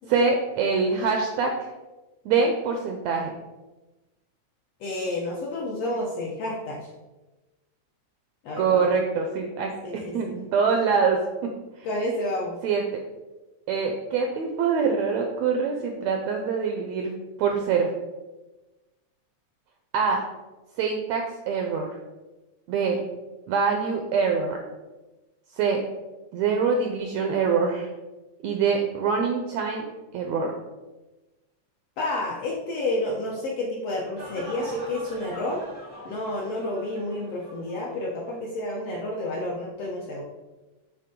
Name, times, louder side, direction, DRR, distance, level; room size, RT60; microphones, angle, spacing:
voice 1, 0.1-1.7 2.2-3.3 8.6-11.5 11.8-11.9 12.6-13.0 13.7-17.1 17.4-17.9 19.9-20.2 20.8-21.9 22.7-23.0 23.5-24.6 25.6-25.8 26.3-27.9 28.4-29.8 30.1-30.5, right 5 dB, 85° right, 3 dB, 1.5 m, -24 dB
voice 2, 4.8-6.9 8.4-8.8 9.8-10.3 11.8-12.6 32.0-35.6 36.0-40.2, left 1 dB, 75° left, -2 dB, 1.4 m, -30 dB
sound 1, 34.2-38.0 38.3-38.4, right 1 dB, 60° right, 0.4 m, -43 dB
8.4 x 3.7 x 3.7 m, 1.1 s
omnidirectional pair, 3.7 m